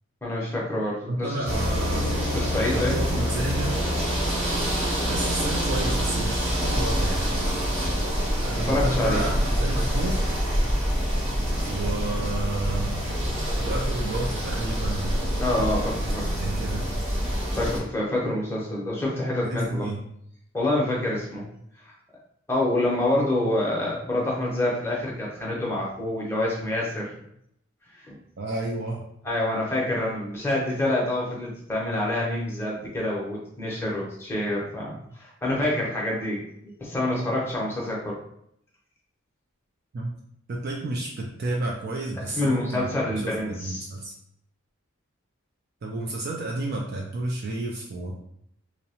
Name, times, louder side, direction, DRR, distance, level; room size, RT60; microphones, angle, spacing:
voice 1, 0.2-1.5 2.2-3.0 8.6-9.2 15.4-16.3 17.6-19.9 20.5-21.5 21.8-21.9 22.5-27.1 28.0-28.2 29.2-38.2 42.4-43.8, left 1 dB, 10° left, -4 dB, 0.6 m, -27 dB
voice 2, 1.1-2.2 2.7-3.8 5.1-7.3 8.4-10.2 11.6-13.0 13.6-15.2 16.4-16.9 19.4-20.0 28.4-29.1 39.9-40.2 40.5-44.1 45.8-48.1, right 2 dB, 45° right, -1 dB, 0.3 m, -31 dB
sound 1, 1.4-17.8, equal, 30° right, 0.8 m, -26 dB
2.7 x 2.0 x 2.8 m, 0.72 s
head